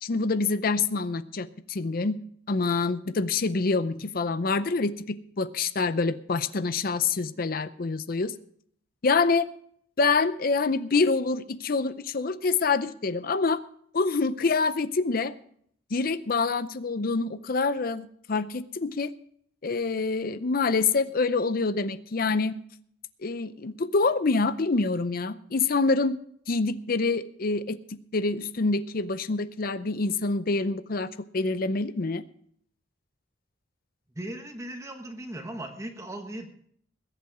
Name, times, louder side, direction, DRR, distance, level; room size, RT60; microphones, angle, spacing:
voice 1, 0.0-2.2 2.5-8.3 9.0-9.5 10.0-13.6 13.9-15.3 15.9-19.1 19.6-22.6 23.2-26.2 26.5-32.2, left 4 dB, 45° left, 14 dB, 0.5 m, -26 dB
voice 2, 34.1-36.5, right 1 dB, 15° right, 4 dB, 1.2 m, -37 dB
21.0 x 8.5 x 4.8 m, 0.64 s
head